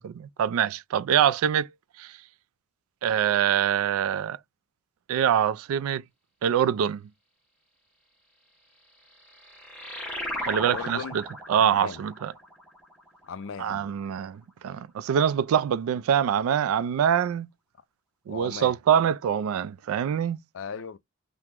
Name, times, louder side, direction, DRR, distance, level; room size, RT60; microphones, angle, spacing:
voice 1, 0.0-1.7 2.0-2.2 3.0-4.4 5.1-6.0 6.4-7.0 10.4-11.2 11.5-12.3 13.6-17.5 18.3-20.4, right 9 dB, 80° right, 0.3 m, -24 dB
sound 1, 8.9-14.0, left 1 dB, 5° left, 0.9 m, -37 dB
voice 2, 10.6-11.2 11.5-12.0 13.2-13.9 18.3-18.7 20.5-21.0, left 6 dB, 65° left, 0.4 m, -37 dB
2.9 x 2.1 x 3.5 m
head